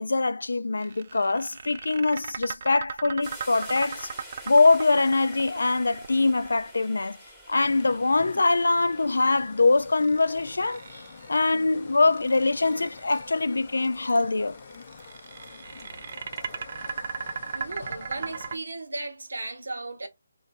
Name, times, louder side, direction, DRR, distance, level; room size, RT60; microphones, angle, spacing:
voice 1, 0.0-4.1 4.5-7.2 7.5-11.0 11.3-14.6, left 3 dB, 90° left, 0.3 m, -23 dB
sound 1, 0.8-7.0 9.8-11.4 11.9-13.3 14.5-18.5, right 6 dB, 40° right, 0.4 m, -38 dB
sound 2, 3.2-16.7, equal, ahead, 0.9 m, -50 dB
sound 3, 7.5-18.6, left 5 dB, 40° left, 0.5 m, -46 dB
voice 2, 17.5-20.1, right 2 dB, 85° right, 1.0 m, -36 dB
2.6 x 2.6 x 4.1 m
hypercardioid pair, 170°, 0 cm